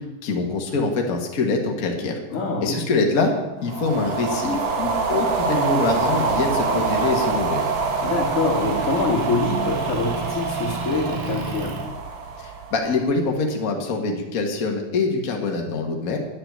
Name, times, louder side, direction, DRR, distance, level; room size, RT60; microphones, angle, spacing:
voice 1, 0.2-2.2 2.6-3.3 3.6-7.7 12.4-16.2, left 3 dB, 70° left, 2 dB, 0.8 m, -24 dB
voice 2, 2.3-2.7 8.0-11.8, left 3 dB, 45° left, -1 dB, 2.7 m, -25 dB
sound 1, 3.6-13.1, right 4 dB, 65° right, 1.1 m, -25 dB
Motor vehicle (road) / Engine, 5.5-11.9, right 2 dB, 85° right, 3.5 m, -36 dB
9.8 x 7.2 x 9.2 m, 1.1 s
omnidirectional pair, 4.0 m